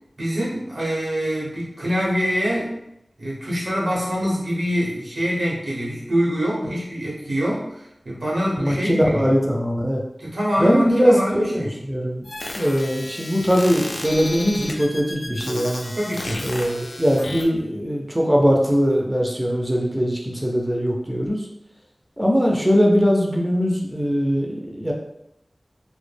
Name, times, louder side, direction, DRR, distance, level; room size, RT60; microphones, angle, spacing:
voice 1, 0.2-2.7 3.2-9.3 10.2-11.7 16.0-16.5, equal, 75° right, -5 dB, 0.8 m, -25 dB
voice 2, 8.6-10.0 10.6-12.2 12.5-15.9 16.4-21.4 22.2-24.9, equal, 10° right, -1 dB, 0.4 m, -21 dB
sound 1, 12.2-17.4, left 1 dB, 75° left, 0.4 m, -33 dB
2.1 x 2.1 x 3.2 m, 0.82 s
wide cardioid pair, 55°, 0 cm